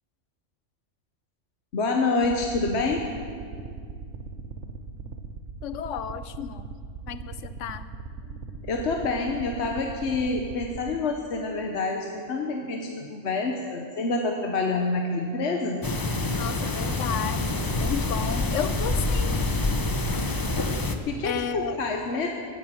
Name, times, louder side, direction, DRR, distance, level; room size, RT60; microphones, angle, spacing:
voice 1, 1.7-3.0 8.3-8.4 8.6-15.9 20.8-22.3, left 3 dB, 65° left, 2 dB, 1.3 m, -27 dB
sound 1, 2.2-11.0, right 5 dB, 80° right, 1.2 m, -40 dB
voice 2, 5.6-6.7 7.1-7.9 16.4-19.4 21.2-21.8, left 9 dB, 85° left, 13 dB, 1.0 m, -33 dB
sound 2, 15.8-21.0, left 2 dB, 25° left, 0.6 m, -26 dB
13.5 x 10.0 x 7.6 m, 2.2 s
omnidirectional pair, 1.2 m